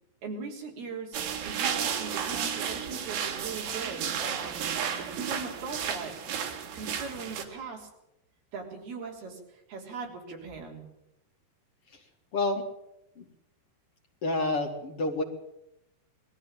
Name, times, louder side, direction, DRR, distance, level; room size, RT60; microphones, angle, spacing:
voice 1, 0.2-1.2 1.4-4.6 5.0-6.1 6.7-7.9 8.5-10.8, right 4 dB, 65° right, 1 dB, 5.5 m, -40 dB
sound 1, 1.1-7.4, right 8 dB, 80° right, 4.3 m, -33 dB
voice 2, 12.3-12.6 13.2-13.3 14.2-15.2, left 2 dB, 45° left, 2 dB, 2.0 m, -29 dB
20.5 x 14.5 x 8.9 m, 0.84 s
omnidirectional pair, 4.9 m